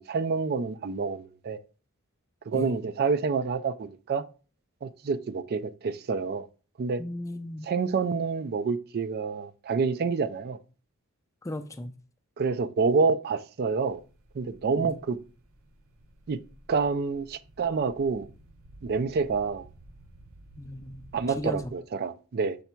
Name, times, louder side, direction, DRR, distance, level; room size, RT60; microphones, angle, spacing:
voice 1, 0.0-1.6 2.5-4.2 4.8-6.5 6.8-7.0 7.6-10.6 12.4-14.0 14.3-15.2 16.3-16.4 16.7-18.3 18.8-19.7 21.1-22.6, right 5 dB, 45° right, 0.4 m, -28 dB
voice 2, 7.0-7.7 11.4-11.9 14.8-14.9 20.6-21.7, left 1 dB, 15° left, 0.4 m, -36 dB
sound 1, 13.9-21.7, right 1 dB, 70° right, 0.8 m, -53 dB
7.0 x 3.4 x 4.4 m
head